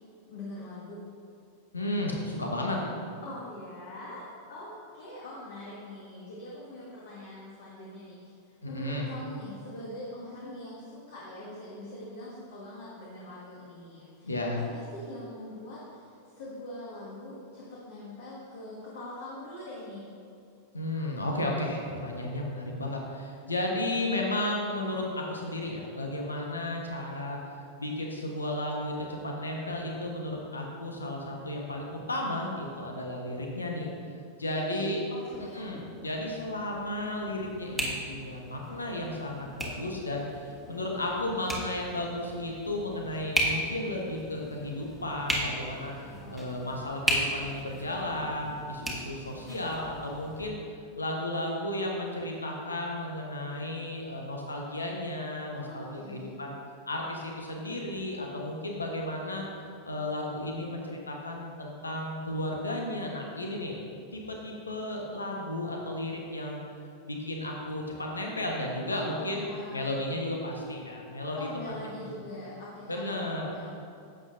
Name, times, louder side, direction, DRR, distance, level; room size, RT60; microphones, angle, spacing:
voice 1, 0.3-1.1 3.2-20.1 34.4-35.8 46.0-46.5 55.5-56.4 68.9-70.1 71.4-73.7, left 1 dB, 60° left, -6 dB, 1.6 m, -43 dB
voice 2, 1.7-2.8 8.6-9.1 14.2-14.6 20.7-27.4 27.8-33.9 34.4-35.0 35.5-50.6 51.0-56.6 56.9-59.4 59.8-63.8 64.1-66.6 67.0-71.7 72.1-72.2 72.9-73.4, left 1 dB, 80° left, 0 dB, 1.2 m, -33 dB
sound 1, 35.3-50.5, equal, 5° left, 1.4 m, -36 dB
11.0 x 7.9 x 2.7 m, 2.5 s
figure-of-eight pair, 90°, 0 cm